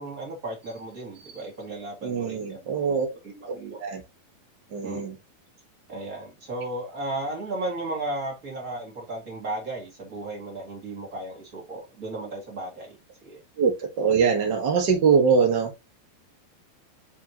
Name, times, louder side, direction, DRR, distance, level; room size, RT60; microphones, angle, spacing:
voice 1, 0.0-3.0 3.2-3.8 4.8-5.1 5.9-13.4, right 2 dB, 30° right, 2.0 m, -35 dB
voice 2, 2.0-3.1 3.5-3.6 3.8-4.0 4.7-5.2 13.6-15.8, right 6 dB, 85° right, 0.9 m, -23 dB
6.7 x 5.0 x 2.9 m
omnidirectional pair, 4.3 m